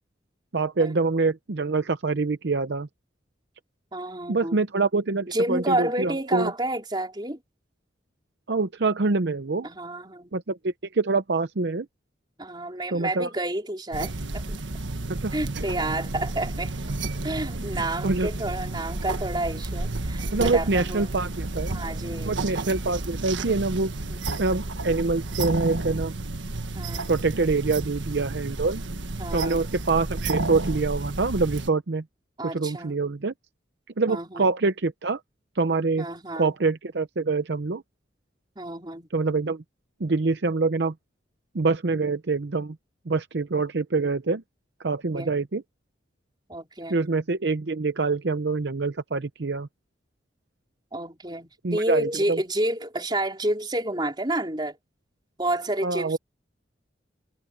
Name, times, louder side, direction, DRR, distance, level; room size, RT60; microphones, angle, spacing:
voice 1, 0.5-2.9 4.3-6.5 8.5-9.7 10.3-11.9 12.9-13.3 15.1-15.3 18.0-18.3 20.3-21.8 22.2-23.9 24.4-26.1 27.1-28.8 29.3-32.0 32.4-33.3 34.0-35.2 35.6-36.1 36.4-37.8 39.1-39.6 40.0-40.9 41.5-42.8 43.1-44.4 44.8-45.6 46.9-49.7 51.6-52.4 55.8-56.2, right 3 dB, 65° right, 0.7 m, -25 dB
voice 2, 3.9-4.6 5.3-7.4 9.6-10.3 12.4-14.6 15.3-16.7 17.2-21.1 21.7-22.7 24.1-24.2 26.7-27.1 29.2-29.7 32.4-33.0 34.1-34.5 36.0-36.6 38.6-39.1 45.1-45.4 46.5-47.0 50.9-54.8 55.4-56.2, right 1 dB, 25° right, 4.3 m, -30 dB
sound 1, 13.9-31.7, right 2 dB, 85° right, 1.5 m, -31 dB
head